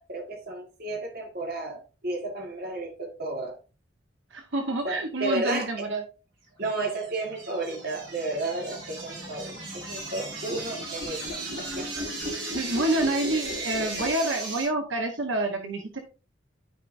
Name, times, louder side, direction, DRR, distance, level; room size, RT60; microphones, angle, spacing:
voice 1, 0.0-3.6 4.8-5.9 6.6-12.1, right 2 dB, 55° right, 1.9 m, -33 dB
voice 2, 4.3-6.0 12.5-16.0, right 2 dB, 90° right, 1.1 m, -28 dB
sound 1, 6.7-14.6, right 1 dB, 70° right, 4.7 m, -35 dB
12.0 x 4.7 x 2.6 m
head